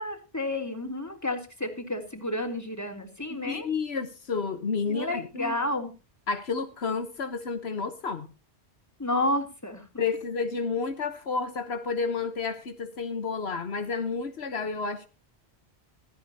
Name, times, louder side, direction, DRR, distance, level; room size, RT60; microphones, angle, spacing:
voice 1, 0.0-3.7 4.9-5.9 9.0-9.8, left 1 dB, 15° left, 3.2 m, -31 dB
voice 2, 3.3-5.5 6.3-8.3 10.0-15.1, left 5 dB, 75° left, 1.4 m, -31 dB
16.0 x 14.5 x 2.8 m
omnidirectional pair, 1.1 m